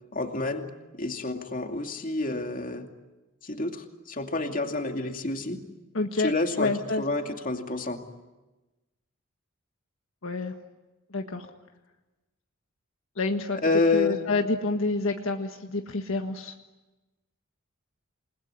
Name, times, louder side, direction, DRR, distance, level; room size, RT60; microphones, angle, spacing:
voice 1, 0.1-2.9 3.4-5.6 6.2-8.0 13.6-14.2, left 3 dB, 40° left, 4 dB, 2.5 m, -28 dB
voice 2, 5.9-6.3 6.6-7.0 10.2-10.5 11.1-11.5 13.2-13.6 13.9-16.5, left 3 dB, 70° left, 4 dB, 1.6 m, -28 dB
28.5 x 21.0 x 9.9 m, 1.1 s
head